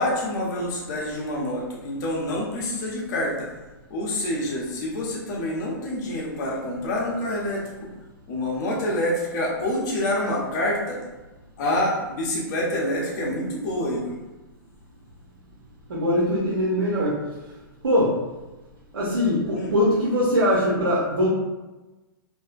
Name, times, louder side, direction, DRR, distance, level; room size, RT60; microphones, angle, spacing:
voice 1, 0.0-3.5 3.9-7.6 8.3-11.0 11.6-14.2 19.5-19.7, left 1 dB, 50° left, -3 dB, 0.8 m, -27 dB
voice 2, 15.9-17.2 17.8-18.2 18.9-21.3, equal, 85° right, -8 dB, 0.7 m, -22 dB
2.6 x 2.1 x 2.4 m, 1.1 s
hypercardioid pair, 130°, 12 cm